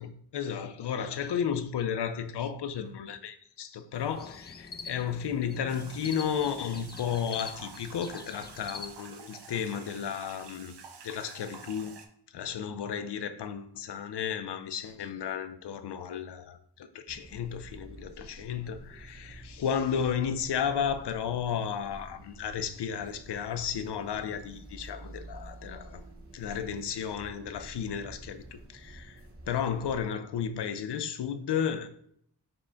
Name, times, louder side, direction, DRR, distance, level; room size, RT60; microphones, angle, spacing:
voice 1, 0.0-10.7 11.0-11.9 12.3-26.0 26.3-29.2 29.5-31.9, left 8 dB, 75° left, 0.5 m, -33 dB
sound 1, 3.9-8.9, left 4 dB, 25° left, 0.3 m, -45 dB
sound 2, 5.7-12.1, right 5 dB, 80° right, 0.6 m, -49 dB
sound 3, 17.1-30.0, right 2 dB, 35° right, 1.0 m, -49 dB
5.7 x 2.1 x 3.8 m
cardioid pair, 50°, 41 cm